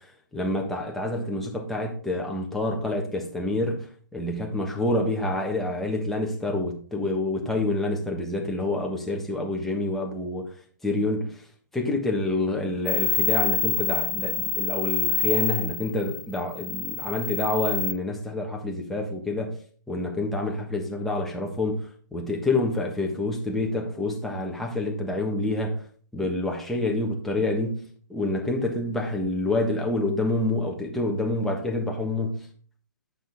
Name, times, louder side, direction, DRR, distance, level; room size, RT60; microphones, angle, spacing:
voice 1, 0.3-10.5 10.8-11.4 11.7-19.6 19.9-21.8 22.1-25.8 26.1-32.5, left 2 dB, ahead, 1.4 m, -27 dB
sound 1, 12.9-17.9, left 5 dB, 80° left, 1.1 m, -27 dB
9.2 x 6.2 x 3.5 m
hypercardioid pair, 140°, 10 cm